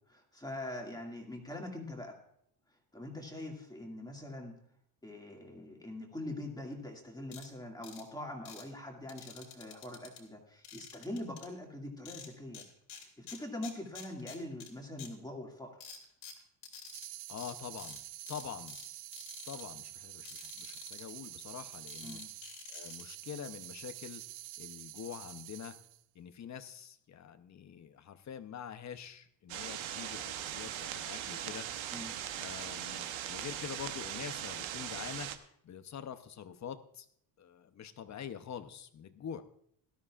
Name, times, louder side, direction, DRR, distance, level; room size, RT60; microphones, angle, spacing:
voice 1, 0.1-2.1 2.7-4.6 5.0-12.7 12.9-15.8 22.0-22.3 31.9-32.2, left 1 dB, 10° left, 0 dB, 2.1 m, -43 dB
sound 1, 7.3-7.5 7.8-8.0 8.5-8.6 9.1-10.2 10.6-11.5 12.1-12.6 12.9-14.7 15.0-15.1 15.8-17.1 17.4-17.5 17.8-18.0 18.3-18.9 19.1-19.6 20.3-21.0 21.9-23.0, left 7 dB, 80° left, 2.7 m, -49 dB
sound 2, 16.9-26.0, right 15 dB, 55° right, 0.5 m, -47 dB
voice 2, 17.3-18.0 18.3-18.8 19.5-22.2 22.7-24.2 24.6-25.8 26.1-31.7 32.4-35.3 35.6-37.1 37.4-39.4, left 8 dB, 35° left, 9 dB, 0.8 m, -45 dB
sound 3, 29.5-35.4, right 10 dB, 75° right, 1.0 m, -40 dB
18.0 x 12.5 x 2.4 m, 0.69 s
cardioid pair, 120°, 47 cm